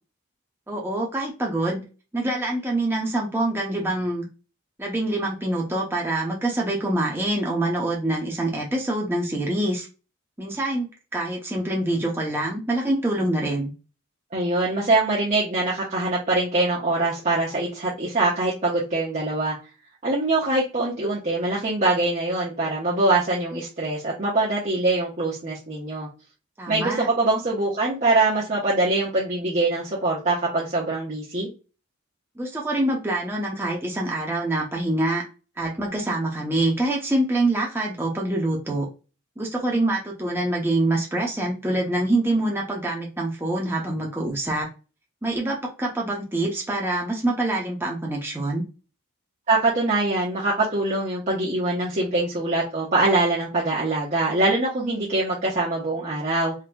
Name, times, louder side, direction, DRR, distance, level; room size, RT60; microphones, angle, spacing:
voice 1, 0.7-1.8 2.1-4.3 4.8-9.9 10.4-10.9 11.1-13.7 26.6-27.1 32.4-35.2 35.6-38.9 39.4-44.7 45.2-48.6, right 1 dB, 10° right, -2 dB, 0.7 m, -25 dB
voice 2, 14.3-19.6 20.0-26.1 26.7-31.5 49.5-56.5, right 2 dB, 35° right, -6 dB, 0.9 m, -23 dB
3.8 x 2.8 x 2.2 m, 0.31 s
head